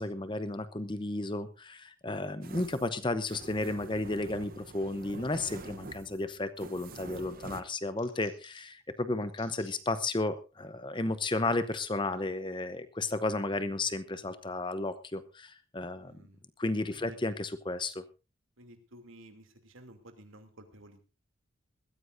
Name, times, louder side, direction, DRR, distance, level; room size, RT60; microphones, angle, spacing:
voice 1, 0.0-16.2 16.6-18.0, left 2 dB, 25° left, 12 dB, 0.8 m, -33 dB
sound 1, 2.4-7.6, right 2 dB, 45° right, 0.9 m, -46 dB
sound 2, 6.7-7.1 7.5-8.8 9.3-9.8 10.3-10.4 11.2-11.4 12.1-12.3, left 7 dB, 80° left, 4.2 m, -58 dB
voice 2, 16.0-16.4 16.9-17.2 18.6-21.0, right 1 dB, 75° right, 5 dB, 2.8 m, -53 dB
21.0 x 14.5 x 2.6 m, 0.30 s
head